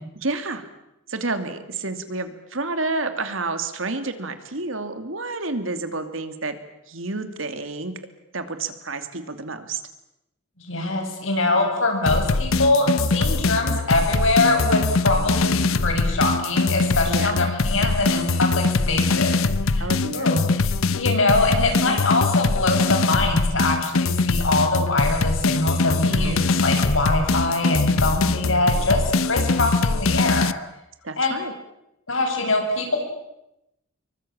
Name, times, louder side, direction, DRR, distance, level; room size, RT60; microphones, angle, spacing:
voice 1, 0.2-0.7 1.1-6.6 6.9-8.0 8.3-9.8 17.1-17.4 19.8-20.3 26.0-26.7 31.0-31.5, right 3 dB, 70° right, 9 dB, 2.7 m, -30 dB
voice 2, 10.6-19.9 20.1-30.5 31.2-31.4 32.1-33.0, left 2 dB, 65° left, 3 dB, 7.7 m, -23 dB
sound 1, 12.1-30.5, left 3 dB, 85° left, 0.9 m, -22 dB
26.0 x 23.5 x 8.9 m, 0.87 s
head